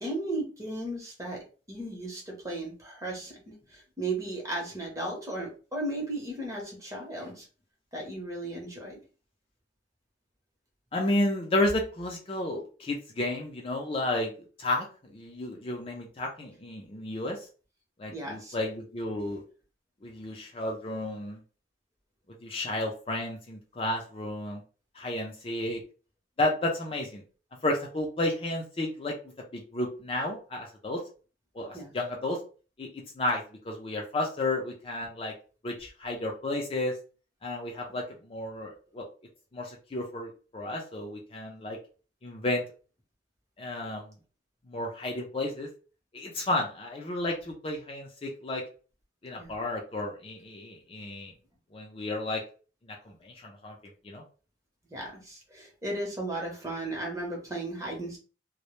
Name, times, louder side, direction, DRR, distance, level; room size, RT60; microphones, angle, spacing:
voice 1, 0.0-1.4 1.7-7.5 7.9-8.9 18.1-18.6 31.7-31.9 49.4-49.5 54.9-58.2, right 2 dB, 15° right, -1 dB, 0.7 m, -35 dB
voice 2, 10.9-14.3 14.6-14.9 15.1-17.4 18.0-19.4 20.0-21.4 22.4-24.6 25.0-25.8 26.4-27.2 27.6-29.2 29.5-31.0 31.5-32.4 32.8-35.3 35.6-36.9 37.4-39.1 39.5-41.8 42.2-42.6 43.6-44.1 44.7-45.7 46.1-48.6 49.2-51.3 51.7-52.4 52.9-53.8 54.0-54.2, left 1 dB, 30° left, 0 dB, 0.4 m, -32 dB
2.0 x 2.0 x 2.9 m, 0.36 s
head